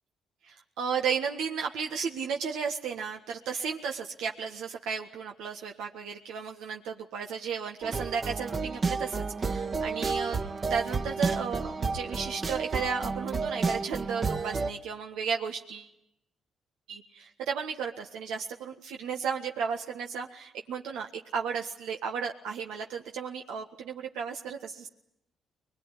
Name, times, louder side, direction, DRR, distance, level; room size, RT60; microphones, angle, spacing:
voice 1, 0.4-10.4 10.7-15.9 16.9-24.9, right 6 dB, 90° right, 2 dB, 1.6 m, -34 dB
sound 1, 7.8-14.7, right 4 dB, 40° right, 1.5 m, -31 dB
22.5 x 21.0 x 9.9 m, 0.79 s
cardioid pair, 90°, 0 cm